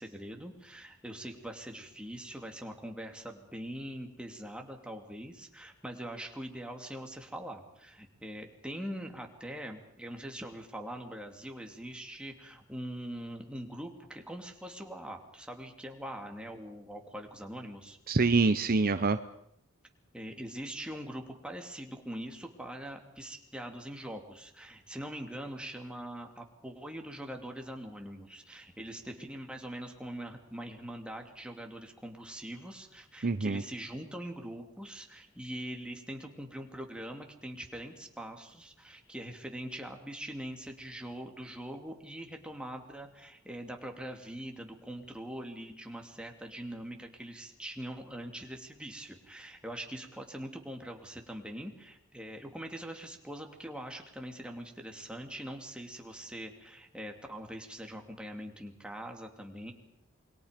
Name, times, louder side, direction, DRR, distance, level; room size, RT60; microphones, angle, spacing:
voice 1, 0.0-18.0 20.1-59.7, equal, 5° right, 2 dB, 2.7 m, -43 dB
voice 2, 18.1-19.2 33.2-33.6, right 3 dB, 45° right, 11 dB, 0.8 m, -25 dB
28.0 x 22.0 x 5.2 m, 0.74 s
head